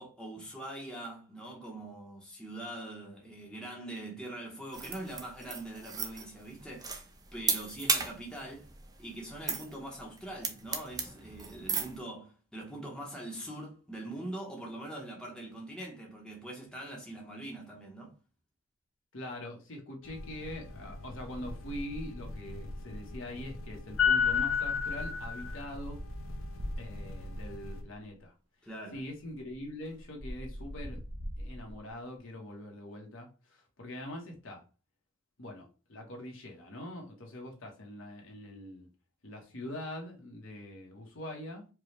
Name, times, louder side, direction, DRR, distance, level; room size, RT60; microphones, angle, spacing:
voice 1, 0.0-6.9 7.3-8.7 9.0-18.2 28.6-29.0, right 1 dB, 5° left, 0.9 m, -43 dB
sound 1, 4.7-12.0, right 5 dB, 20° right, 0.5 m, -35 dB
voice 2, 19.1-26.0 26.8-28.3 28.9-31.0 31.4-34.6 35.4-38.9 39.2-41.7, left 1 dB, 70° left, 1.2 m, -43 dB
sound 2, 20.0-27.8, left 6 dB, 85° left, 0.6 m, -34 dB
sound 3, 25.4-27.9 28.9-29.0 29.3-31.9, equal, 65° right, 1.0 m, -42 dB
4.7 x 2.3 x 3.2 m
head